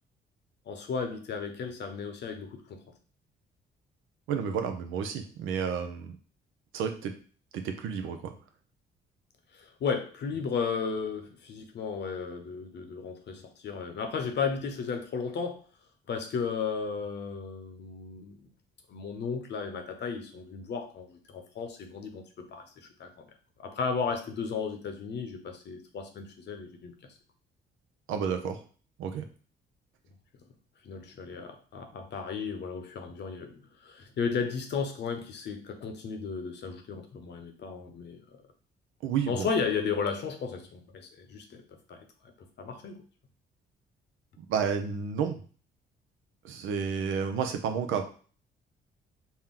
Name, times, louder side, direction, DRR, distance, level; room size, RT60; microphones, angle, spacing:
voice 1, 0.7-2.8 9.5-15.6 16.1-18.4 18.9-22.2 22.5-23.3 23.6-26.9 30.8-38.2 39.3-41.6 41.9-42.0 42.6-43.0, left 5 dB, 60° left, 6 dB, 0.8 m, -34 dB
voice 2, 4.3-6.2 6.7-7.1 7.5-8.3 28.1-28.6 29.0-29.3 39.0-39.5 44.4-45.4 46.4-48.0, right 7 dB, 90° right, 6 dB, 0.6 m, -31 dB
4.3 x 2.2 x 3.7 m, 0.40 s
cardioid pair, 90°, 20 cm